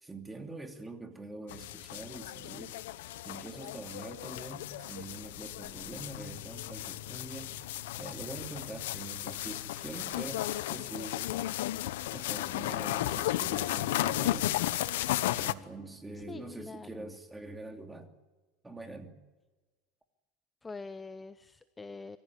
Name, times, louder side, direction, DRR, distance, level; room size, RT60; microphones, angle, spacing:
voice 1, 0.0-2.8 3.2-11.2 12.1-14.5 15.4-18.1 18.6-19.2, right 2 dB, 10° right, 4 dB, 2.8 m, -44 dB
sound 1, 1.5-15.5, left 14 dB, 85° left, 0.9 m, -34 dB
voice 2, 16.3-16.9 20.6-22.2, left 3 dB, 15° left, 12 dB, 0.7 m, -44 dB
24.5 x 15.0 x 9.6 m, 1.3 s
supercardioid pair, 125°, 0 cm